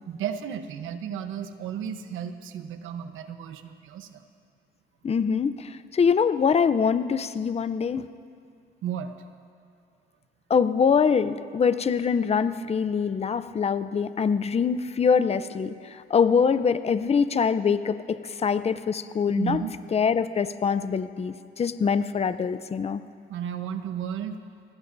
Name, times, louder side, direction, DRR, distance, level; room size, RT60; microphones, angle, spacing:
voice 1, 0.1-4.2 8.8-9.1 19.4-19.7 23.3-24.4, right 8 dB, 85° right, 8 dB, 1.0 m, -33 dB
voice 2, 5.0-8.1 10.5-19.6 19.9-23.0, left 6 dB, 30° left, 12 dB, 0.6 m, -24 dB
25.0 x 19.0 x 2.7 m, 2.3 s
cardioid pair, 90°, 20 cm